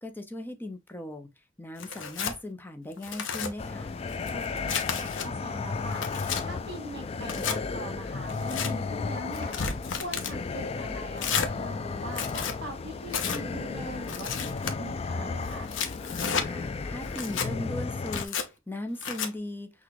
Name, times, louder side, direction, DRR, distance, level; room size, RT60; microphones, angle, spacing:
voice 1, 0.0-1.3 1.6-3.9 16.4-19.7, left 1 dB, 10° left, 0.7 m, -38 dB
Tearing, 1.8-2.4 2.9-3.5 4.1-5.3 5.7-6.4 7.2-7.6 8.3-8.7 9.3-10.3 11.2-11.5 12.1-12.6 13.1-13.4 14.1-14.7 15.5-16.5 17.1-17.5 18.1-18.5 19.0-19.3, left 6 dB, 75° left, 0.8 m, -32 dB
sound 1, 3.6-18.3, left 4 dB, 30° left, 0.3 m, -34 dB
voice 2, 4.3-6.0 6.4-9.6 10.0-15.7, right 1 dB, 55° right, 2.5 m, -41 dB
6.0 x 2.4 x 3.1 m
head